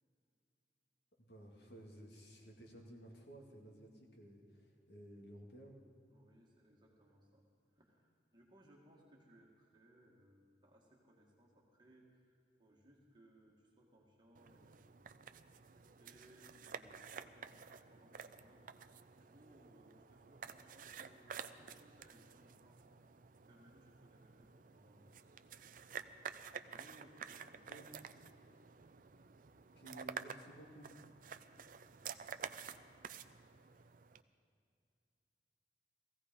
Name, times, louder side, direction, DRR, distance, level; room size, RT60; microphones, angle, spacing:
voice 1, 1.2-5.8 27.7-27.9 29.8-30.9, right 1 dB, 65° left, 0 dB, 2.3 m, -55 dB
voice 2, 6.1-7.5 7.7-14.8 16.0-18.7 19.1-26.2 26.6-28.4 31.9-32.2, right 1 dB, 25° right, -2 dB, 1.9 m, -66 dB
sound 1, 14.3-34.2, right 6 dB, 50° right, 0.5 m, -51 dB
17.5 x 15.5 x 5.3 m, 2.4 s
head